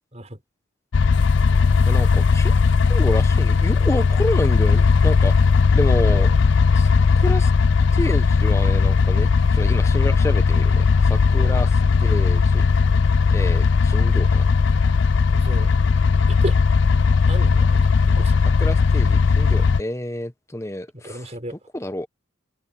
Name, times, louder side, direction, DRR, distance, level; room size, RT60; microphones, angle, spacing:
sound 1, 0.9-19.8, left 5 dB, 60° left, 0.5 m, -17 dB
voice 1, 1.9-2.6 2.9-5.4 5.7-6.3 6.7-7.5 7.9-12.6 13.3-14.5 18.6-22.1, left 1 dB, 15° left, 1.0 m, -29 dB
voice 2, 15.3-15.7 16.3-16.6 17.3-17.8 18.1-18.4 21.0-21.5, right 1 dB, 30° right, 6.0 m, -33 dB
head